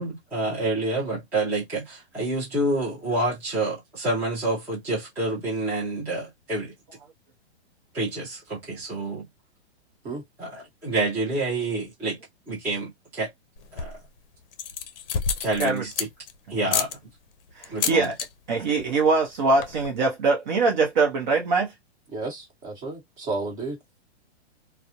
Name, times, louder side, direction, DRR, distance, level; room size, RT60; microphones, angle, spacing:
voice 1, 0.0-6.7 7.9-9.3 10.4-12.2 12.5-13.3 13.7-14.0 15.4-16.1 16.5-17.0 17.7-18.1, right 2 dB, 5° right, 0.5 m, -28 dB
sound 1, 13.6-14.1 14.5-16.3 16.7-16.9 17.6-18.3 18.6-18.9 19.1-19.2 19.4-19.9, left 7 dB, 55° left, 0.6 m, -29 dB
voice 2, 17.6-18.2 18.5-21.7, right 3 dB, 45° right, 0.7 m, -22 dB
voice 3, 22.1-23.8, right 3 dB, 20° right, 1.1 m, -32 dB
2.2 x 2.1 x 2.8 m
hypercardioid pair, 155°, 34 cm